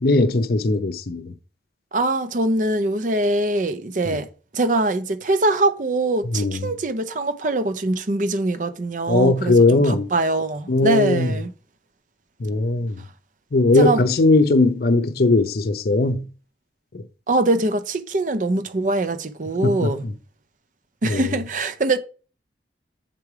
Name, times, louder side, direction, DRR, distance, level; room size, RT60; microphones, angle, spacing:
voice 1, 0.0-1.3 6.3-6.7 9.1-10.1 10.7-11.3 12.4-13.0 13.5-16.3 16.9-17.0 19.6-20.1 21.0-21.4, left 2 dB, 55° left, 0.6 m, -19 dB
voice 2, 1.9-4.3 4.5-11.5 13.7-14.0 17.3-20.1 21.0-22.0, right 2 dB, 45° right, 0.6 m, -23 dB
7.5 x 3.2 x 4.7 m
head